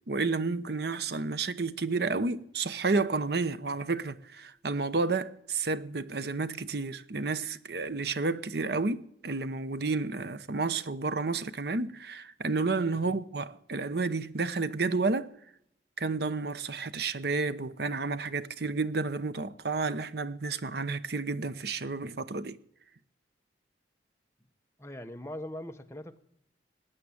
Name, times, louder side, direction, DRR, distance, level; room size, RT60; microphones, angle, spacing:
voice 1, 0.1-15.3 16.0-22.6, right 3 dB, 60° right, 0.8 m, -31 dB
voice 2, 24.8-26.2, left 1 dB, 15° left, 1.0 m, -41 dB
18.5 x 9.2 x 8.5 m
head